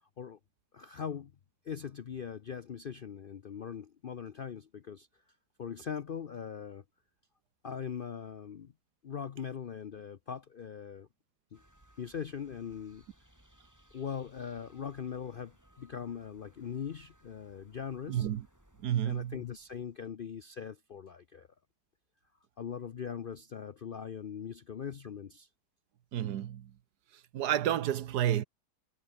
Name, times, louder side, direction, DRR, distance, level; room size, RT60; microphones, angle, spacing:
voice 1, 0.7-1.3 1.6-5.1 5.6-6.8 7.6-8.7 9.0-11.1 11.5-11.6 12.0-13.0 13.9-18.3 19.0-21.5 22.6-25.5, left 7 dB, 60° left, 0.5 m, -41 dB
sound 1, 11.5-20.1, right 1 dB, 10° right, 4.5 m, -64 dB
voice 2, 18.1-18.5 18.8-19.4 26.1-26.7 27.1-28.4, right 11 dB, 75° right, 1.5 m, -31 dB
omnidirectional pair, 1.7 m